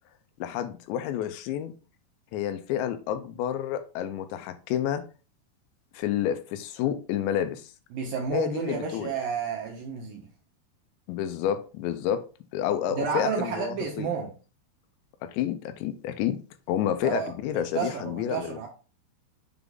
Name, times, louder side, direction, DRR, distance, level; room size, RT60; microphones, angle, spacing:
voice 1, 0.4-1.7 2.3-5.1 5.9-7.7 8.3-9.1 11.1-12.2 12.5-14.1 15.2-16.4 16.7-18.7, left 10 dB, 90° left, 3.0 m, -29 dB
voice 2, 7.9-10.3 12.9-14.3 17.0-18.7, right 6 dB, 75° right, 2.2 m, -31 dB
7.0 x 3.8 x 3.6 m
omnidirectional pair, 5.1 m